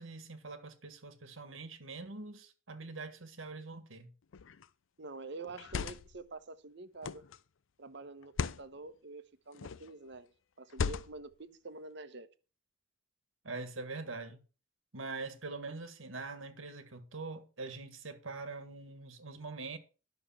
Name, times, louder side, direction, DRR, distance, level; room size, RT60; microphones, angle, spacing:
voice 1, 0.0-4.1 13.4-14.4 14.9-19.8, right 3 dB, 90° right, 1.8 m, -43 dB
sound 1, 4.3-4.7 5.5-6.2 7.0-7.4 8.2-8.7 9.5-9.9 10.7-11.3, left 5 dB, 75° left, 0.5 m, -37 dB
voice 2, 5.0-7.2 7.8-10.3 10.6-12.3, right 3 dB, 60° right, 1.0 m, -47 dB
11.0 x 6.7 x 5.8 m
head